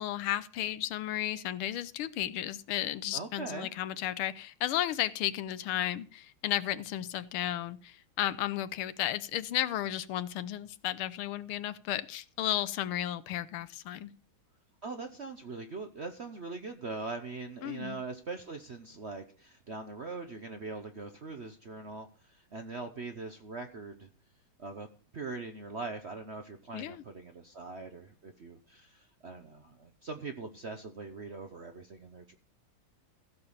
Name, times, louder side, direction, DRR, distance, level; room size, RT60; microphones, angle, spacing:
voice 1, 0.0-14.1 17.6-18.0 26.7-27.0, left 12 dB, 85° left, 15 dB, 1.6 m, -33 dB
voice 2, 3.1-3.7 14.8-24.1 24.6-24.9 25.1-32.4, right 3 dB, 50° right, 6 dB, 0.8 m, -42 dB
15.5 x 6.7 x 5.5 m, 0.40 s
omnidirectional pair, 2.3 m